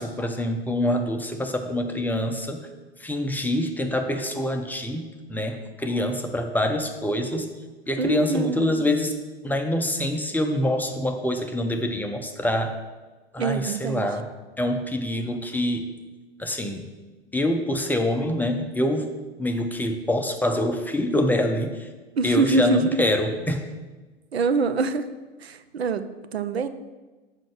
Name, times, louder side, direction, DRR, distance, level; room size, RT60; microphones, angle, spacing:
voice 1, 0.0-2.7 3.0-7.5 7.9-12.7 13.3-14.3 14.6-15.9 16.4-16.9 17.3-19.1 19.4-21.9 22.2-23.6, left 1 dB, 5° left, 5 dB, 0.6 m, -25 dB
voice 2, 8.0-8.7 13.4-14.1 22.2-23.0 24.3-25.1 25.4-26.7, right 3 dB, 75° right, 11 dB, 0.6 m, -24 dB
6.2 x 5.7 x 6.4 m, 1.2 s
figure-of-eight pair, 85°, 32 cm